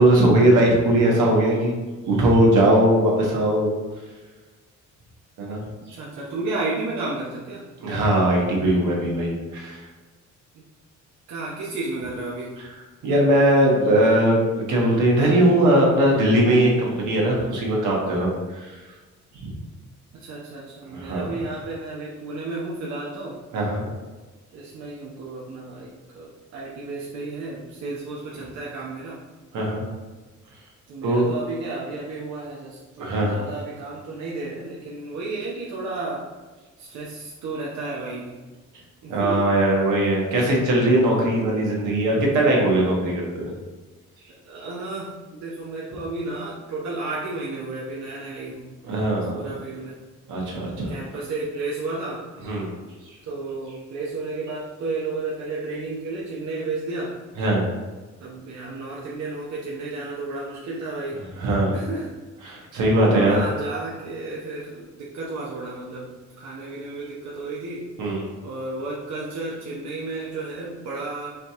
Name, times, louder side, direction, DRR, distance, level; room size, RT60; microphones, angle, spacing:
voice 1, 0.0-1.7 2.0-3.8 5.4-5.6 5.9-6.0 7.8-9.8 13.0-14.4 14.7-18.8 19.3-19.5 20.9-21.3 23.5-23.9 29.5-29.8 31.0-31.3 33.0-33.4 39.1-43.5 48.8-49.4 50.3-50.9 52.4-52.7 53.1-53.2 57.4-57.6 61.4-61.8 62.4-63.4 68.0-68.3, right 1 dB, 85° right, -2 dB, 1.3 m, -20 dB
voice 2, 5.9-7.7 10.5-10.6 11.3-12.6 20.1-23.4 24.5-25.9 26.1-29.2 30.9-36.3 36.8-38.4 39.0-39.4 44.4-48.7 49.3-50.0 50.9-52.3 53.2-57.2 58.2-61.2 61.7-62.1 63.0-67.9 68.4-71.3, right 3 dB, 65° right, -5 dB, 0.8 m, -32 dB
5.0 x 2.9 x 3.6 m, 1.3 s
cardioid pair, 90°, 30 cm